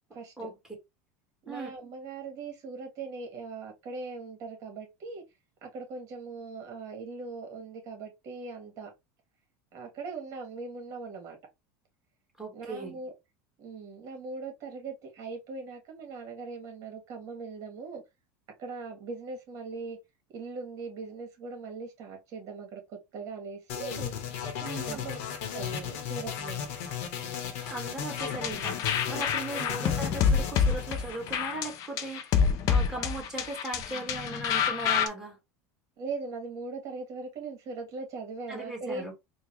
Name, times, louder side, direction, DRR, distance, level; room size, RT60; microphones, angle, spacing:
voice 1, 0.1-0.5 1.5-5.2 5.6-8.9 9.7-11.4 12.5-13.1 13.6-18.0 18.6-20.0 20.3-24.1 24.9-25.2 25.5-26.7 29.5-29.9 36.0-39.1, right 4 dB, 45° right, 1.7 m, -40 dB
voice 2, 12.4-13.0 24.6-25.1 27.6-32.4 32.7-35.4 38.5-39.1, right 2 dB, 5° right, 1.8 m, -38 dB
sound 1, 23.7-31.8, left 8 dB, 75° left, 1.1 m, -36 dB
sound 2, 28.2-35.1, left 7 dB, 50° left, 0.6 m, -27 dB
3.7 x 2.3 x 3.0 m
supercardioid pair, 120°, 8 cm